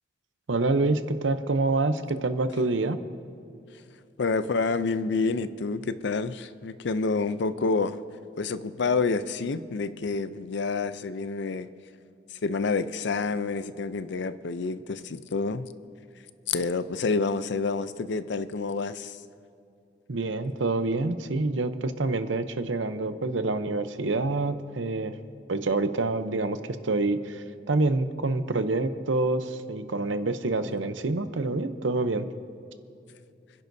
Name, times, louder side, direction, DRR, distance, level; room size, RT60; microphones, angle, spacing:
voice 1, 0.5-3.0 20.1-25.1 25.5-26.6 26.8-32.3, right 2 dB, 80° right, 10 dB, 0.8 m, -27 dB
voice 2, 4.2-8.0 8.4-11.7 12.4-15.7 16.5-19.2, left 4 dB, 65° left, 13 dB, 0.5 m, -28 dB
30.0 x 10.5 x 2.7 m, 2.7 s
head